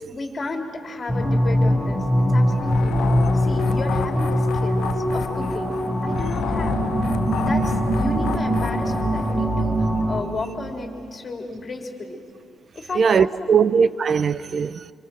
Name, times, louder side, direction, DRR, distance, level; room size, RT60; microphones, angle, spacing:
voice 1, 0.1-5.7 6.0-6.8 7.4-12.2 12.7-13.6, left 3 dB, 35° left, 3.7 m, -33 dB
sound 1, 1.1-10.2, equal, 15° right, 4.8 m, -22 dB
sound 2, 2.6-9.5, left 9 dB, 75° left, 0.7 m, -31 dB
voice 2, 12.9-14.9, right 6 dB, 45° right, 0.7 m, -20 dB
26.0 x 25.5 x 7.7 m
cardioid pair, 90°, 0 cm